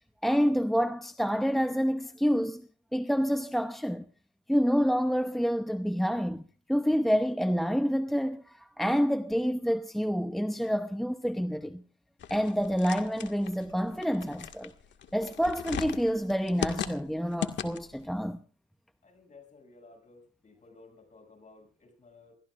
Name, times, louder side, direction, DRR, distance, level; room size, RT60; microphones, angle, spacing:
voice 1, 0.2-2.6 2.9-4.0 4.5-6.4 6.7-11.8 12.3-14.7 15.1-18.4, equal, ahead, 0.9 m, -28 dB
sound 1, 12.2-18.0, left 8 dB, 60° left, 2.0 m, -38 dB
voice 2, 19.0-22.4, left 3 dB, 35° left, 7.4 m, -55 dB
28.5 x 14.5 x 2.6 m
cardioid pair, 75°, 21 cm